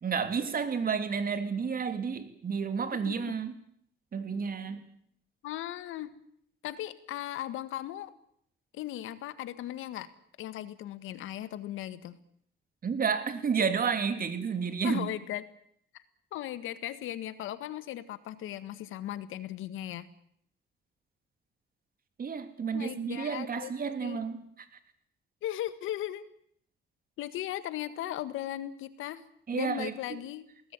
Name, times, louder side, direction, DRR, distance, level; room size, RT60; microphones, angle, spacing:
voice 1, 0.0-3.5 4.1-4.9 12.8-15.1 22.2-24.4 29.5-29.9, right 6 dB, 45° right, 9 dB, 3.3 m, -31 dB
voice 2, 5.4-6.1 6.6-8.1 8.7-10.1 10.4-12.2 14.8-15.4 15.9-16.0 16.3-20.1 22.7-23.7 24.0-24.2 25.4-26.2 27.2-29.2 29.5-30.4, left 13 dB, 90° left, 13 dB, 1.7 m, -37 dB
22.0 x 18.5 x 9.1 m, 0.68 s
cardioid pair, 90°, 20 cm